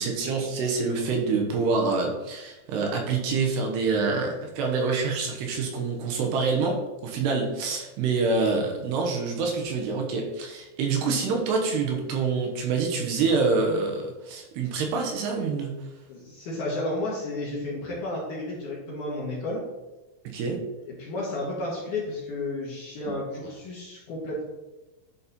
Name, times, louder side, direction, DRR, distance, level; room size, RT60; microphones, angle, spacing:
voice 1, 0.0-15.8 20.3-20.6, right 4 dB, 75° right, 1 dB, 3.0 m, -26 dB
voice 2, 16.1-19.6 20.9-24.4, left 2 dB, 60° left, -4 dB, 2.4 m, -32 dB
11.0 x 4.2 x 4.2 m, 1.1 s
omnidirectional pair, 5.1 m